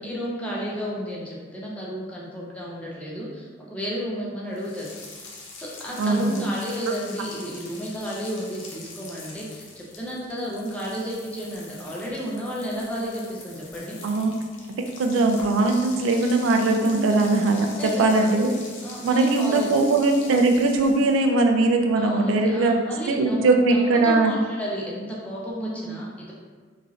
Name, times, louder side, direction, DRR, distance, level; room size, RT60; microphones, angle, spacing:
voice 1, 0.0-4.9 5.5-14.0 16.8-17.1 17.6-18.3 18.8-19.7 22.0-26.3, equal, 5° left, -5 dB, 0.5 m, -32 dB
sound 1, 4.6-21.4, left 3 dB, 75° left, 0.6 m, -43 dB
voice 2, 6.0-6.3 14.0-14.3 14.7-17.7 18.0-18.5 19.0-22.8 23.1-24.3 25.9-26.0, right 3 dB, 90° right, 4 dB, 0.3 m, -20 dB
3.0 x 2.5 x 2.4 m, 1.5 s
head